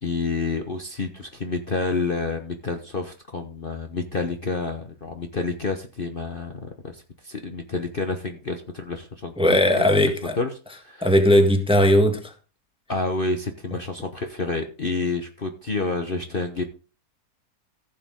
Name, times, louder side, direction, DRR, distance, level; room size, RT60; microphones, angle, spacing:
voice 1, 0.0-9.3 9.7-11.1 12.9-16.6, left 3 dB, 35° left, 1.2 m, -29 dB
voice 2, 9.4-10.4 11.0-12.3, left 1 dB, 5° right, 1.4 m, -18 dB
15.0 x 7.4 x 3.7 m
omnidirectional pair, 1.7 m